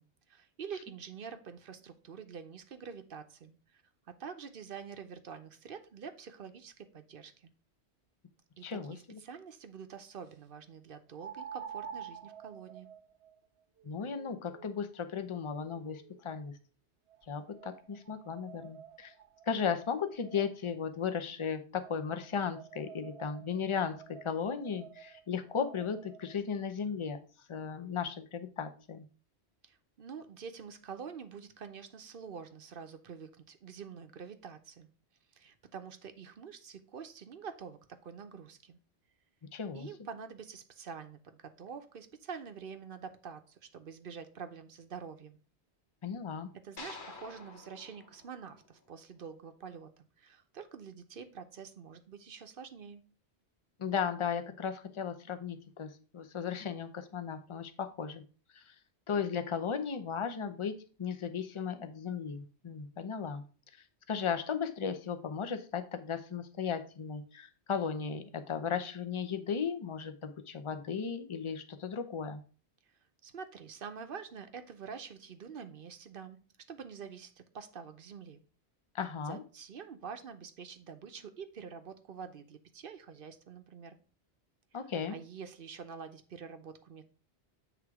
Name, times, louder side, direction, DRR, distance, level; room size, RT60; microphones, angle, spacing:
voice 1, 0.0-3.8 4.2-7.5 8.6-12.9 29.6-34.9 35.3-38.8 39.7-45.4 46.6-53.0 73.2-76.4 76.7-78.4 79.2-84.0 84.7-84.8 85.1-87.0, right 6 dB, 55° right, 9 dB, 0.9 m, -46 dB
voice 2, 8.6-9.2 13.8-16.6 17.3-19.1 19.5-27.2 27.5-29.0 39.5-39.9 46.0-46.5 53.8-58.2 58.5-58.7 59.1-63.4 64.1-72.4 78.9-79.4 84.7-85.2, left 6 dB, 35° left, 9 dB, 0.6 m, -36 dB
sound 1, 8.6-8.7 11.2-16.3 17.1-20.8 21.8-26.4, right 8 dB, 85° right, 1.0 m, -50 dB
sound 2, 46.8-49.1, left 3 dB, 50° left, 1.2 m, -49 dB
8.0 x 3.6 x 4.7 m, 0.37 s
omnidirectional pair, 1.1 m